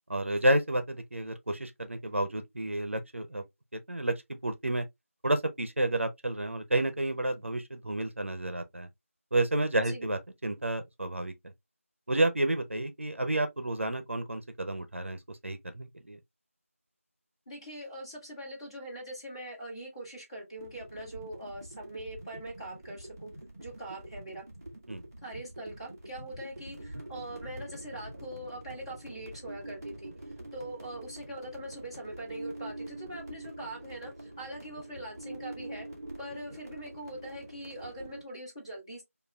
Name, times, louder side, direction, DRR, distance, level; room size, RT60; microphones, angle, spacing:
voice 1, 0.1-3.4 3.9-4.1 4.4-4.8 5.2-8.9 9.3-11.3 12.1-16.2 24.9-25.0, right 1 dB, 60° right, 0.6 m, -30 dB
voice 2, 17.5-23.3 23.6-24.4 25.2-30.1 30.5-35.9 36.2-39.0, right 1 dB, 20° left, 1.3 m, -42 dB
sound 1, 20.6-38.2, right 1 dB, 15° right, 0.7 m, -45 dB
5.1 x 2.4 x 2.2 m
figure-of-eight pair, 175°, 8 cm